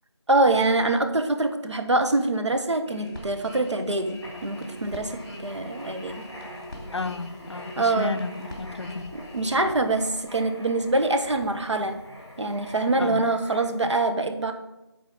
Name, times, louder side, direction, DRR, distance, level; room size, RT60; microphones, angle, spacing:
voice 1, 0.3-6.2 7.8-8.1 9.3-12.0 12.4-14.5, right 2 dB, 85° right, 1.3 m, -24 dB
sound 1, 2.9-10.3 10.7-10.9, left 1 dB, 40° left, 2.4 m, -42 dB
Writing, 4.1-13.9, equal, ahead, 0.9 m, -45 dB
voice 2, 6.9-9.2 13.0-13.2, left 3 dB, 75° left, 0.6 m, -32 dB
8.9 x 4.3 x 7.0 m
figure-of-eight pair, 180°, 15 cm